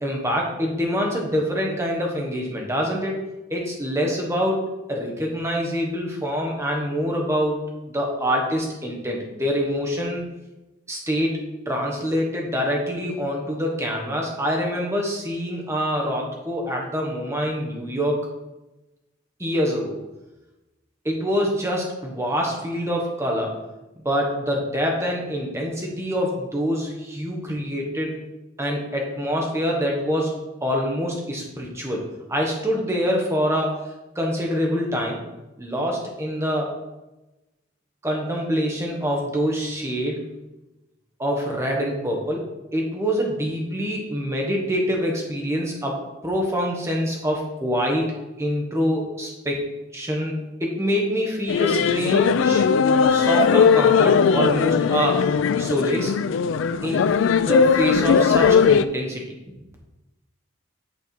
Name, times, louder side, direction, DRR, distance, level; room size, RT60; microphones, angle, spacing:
voice 1, 0.0-3.2 3.5-7.6 7.9-10.2 10.9-11.4 11.7-18.2 19.4-20.0 21.0-23.5 24.0-28.2 28.6-30.3 30.6-32.0 32.3-33.8 34.1-35.2 35.6-36.7 38.0-40.2 41.2-42.4 42.7-46.0 46.2-49.6 49.9-50.3 50.6-52.6 53.1-55.3 55.6-56.1 56.8-57.1 57.4-59.5, equal, 15° right, -1 dB, 1.2 m, -25 dB
sound 1, 51.5-58.8, left 6 dB, 70° left, 0.3 m, -18 dB
8.3 x 4.6 x 4.5 m, 1.0 s
head